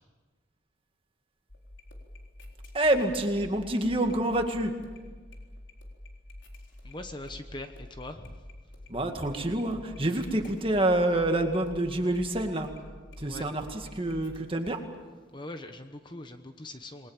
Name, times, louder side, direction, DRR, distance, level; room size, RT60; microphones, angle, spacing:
sound 1, 1.5-14.8 15.3-15.7 16.1-16.2, left 1 dB, 75° left, 4.1 m, -47 dB
voice 1, 2.7-4.7 8.9-12.7 13.2-14.8, right 1 dB, 30° right, 4 dB, 2.1 m, -27 dB
voice 2, 6.8-8.5 10.1-10.2 13.2-13.4 15.3-17.1, left 2 dB, 25° left, 7 dB, 1.1 m, -42 dB
28.0 x 21.0 x 7.4 m, 1.4 s
head